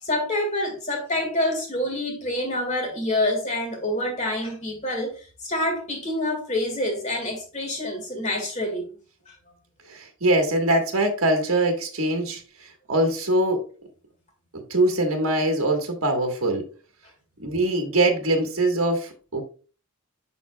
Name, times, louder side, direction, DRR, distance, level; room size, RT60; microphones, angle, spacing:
voice 1, 0.0-8.8 9.3-9.4, left 1 dB, 30° left, 1.8 m, -27 dB
voice 2, 9.9-12.4 12.9-13.6 14.7-16.6 17.4-19.4, right 1 dB, 65° right, 1.5 m, -22 dB
11.0 x 3.9 x 2.2 m
head